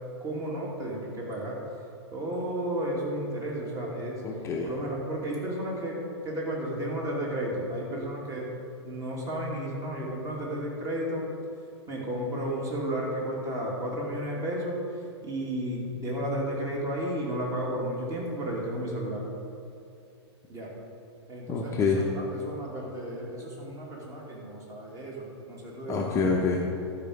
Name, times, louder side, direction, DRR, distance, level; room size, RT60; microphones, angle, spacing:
voice 1, 0.2-1.6 2.1-4.2 4.6-8.5 8.8-11.3 11.9-14.8 15.2-19.2 20.5-20.7 21.3-26.4, right 1 dB, 20° right, -3 dB, 2.6 m, -33 dB
voice 2, 4.2-4.7 21.5-22.0 25.9-26.7, left 4 dB, 20° left, -1 dB, 1.0 m, -26 dB
12.5 x 5.1 x 6.6 m, 2.6 s
hypercardioid pair, 125°, 15 cm